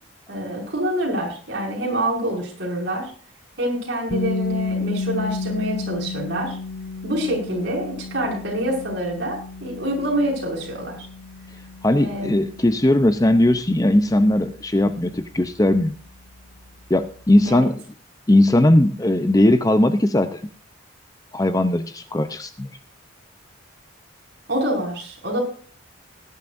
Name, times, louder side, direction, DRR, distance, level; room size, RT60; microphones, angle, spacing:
voice 1, 0.3-3.1 3.6-6.6 7.0-11.1 12.0-12.3 17.4-17.6 24.5-25.4, right 1 dB, 55° right, -1 dB, 6.1 m, -26 dB
sound 1, 4.1-15.9, left 3 dB, 65° left, 1.6 m, -32 dB
voice 2, 11.8-16.0 16.9-17.8 18.3-20.4 21.3-22.7, left 1 dB, 15° left, 10 dB, 0.6 m, -18 dB
19.5 x 11.0 x 2.6 m, 0.42 s
head